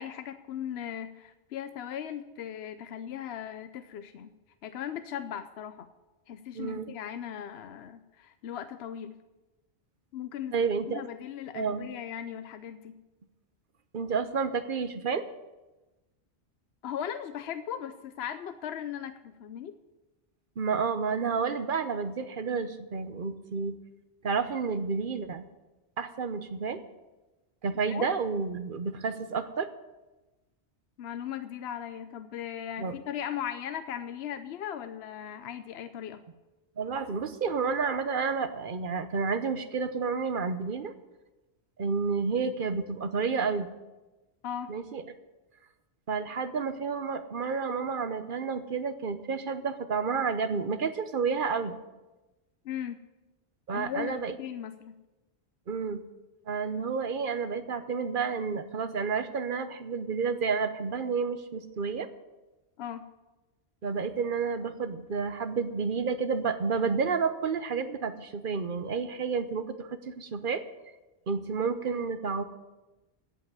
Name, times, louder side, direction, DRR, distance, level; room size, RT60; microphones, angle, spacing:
voice 1, 0.0-4.3 4.6-5.9 6.3-9.2 10.1-10.5 10.9-13.0 16.8-19.7 27.9-28.1 31.0-36.2 44.4-44.7 52.6-53.0 53.7-54.9 62.8-63.1, left 9 dB, 70° left, 10 dB, 0.9 m, -38 dB
voice 2, 6.5-6.9 10.5-11.0 11.5-11.9 13.9-15.2 20.6-23.8 24.2-25.5 26.0-26.8 27.6-29.7 32.8-32.9 36.8-40.9 41.8-43.7 44.7-45.0 46.1-51.8 53.7-54.4 55.7-56.0 56.5-62.1 63.8-70.6 71.3-72.4, right 5 dB, 55° right, 10 dB, 1.0 m, -30 dB
16.0 x 5.7 x 9.3 m, 1.1 s
omnidirectional pair, 1.1 m